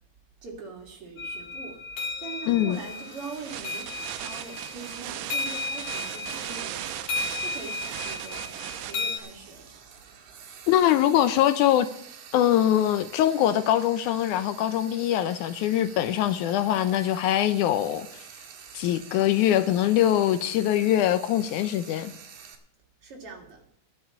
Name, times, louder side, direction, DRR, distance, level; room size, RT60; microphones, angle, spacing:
voice 1, 0.4-1.8 2.2-9.7 23.0-23.7, right 4 dB, 45° right, 3.5 m, -42 dB
sound 1, 1.2-9.2, left 3 dB, 55° left, 2.9 m, -35 dB
voice 2, 2.5-2.8 10.7-11.9 12.3-18.2 18.7-22.1, left 12 dB, 80° left, 2.0 m, -23 dB
Frying (food), 2.7-22.6, right 7 dB, 70° right, 3.0 m, -47 dB
sound 2, 3.4-8.9, right 13 dB, 90° right, 2.3 m, -37 dB
11.5 x 7.2 x 8.8 m
omnidirectional pair, 3.6 m